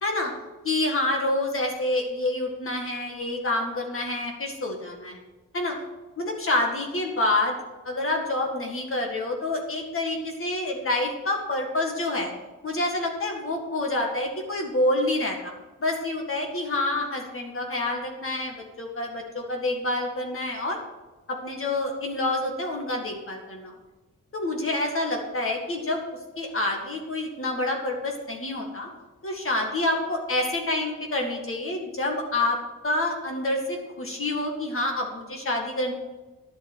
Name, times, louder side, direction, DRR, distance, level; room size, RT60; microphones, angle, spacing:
voice 1, 0.0-0.3 0.6-5.2 5.5-5.8 6.2-7.6 7.8-12.3 12.6-15.5 15.8-20.8 21.3-23.7 24.3-26.0 26.4-28.9 29.2-32.6 32.8-35.9, left 2 dB, 45° left, 1 dB, 1.9 m, -27 dB
11.5 x 7.9 x 6.3 m, 1.2 s
wide cardioid pair, 125°, 31 cm